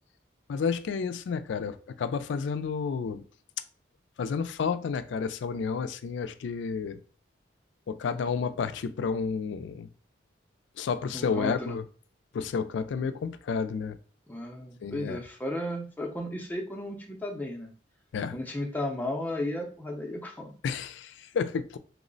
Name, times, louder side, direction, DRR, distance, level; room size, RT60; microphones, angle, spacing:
voice 1, 0.5-3.2 4.2-7.0 7.9-9.9 10.8-11.8 12.3-14.0 14.8-15.2 18.1-18.4 20.6-21.8, left 5 dB, 75° left, 0.3 m, -31 dB
voice 2, 11.1-11.8 14.3-17.7 18.3-20.5, left 1 dB, 10° left, 0.5 m, -34 dB
3.0 x 2.0 x 3.8 m
head